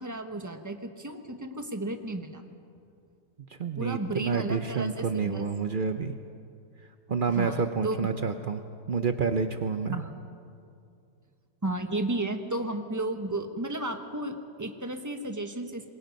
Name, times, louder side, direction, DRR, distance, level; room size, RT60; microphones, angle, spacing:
voice 1, 0.0-2.4 3.8-5.4 7.3-8.1 9.9-10.1 11.6-15.9, right 2 dB, 10° right, 6 dB, 1.0 m, -33 dB
voice 2, 3.5-6.1 7.1-8.6 8.9-10.0, right 5 dB, 70° right, 7 dB, 0.5 m, -29 dB
27.0 x 21.5 x 5.3 m, 2.5 s
omnidirectional pair, 2.0 m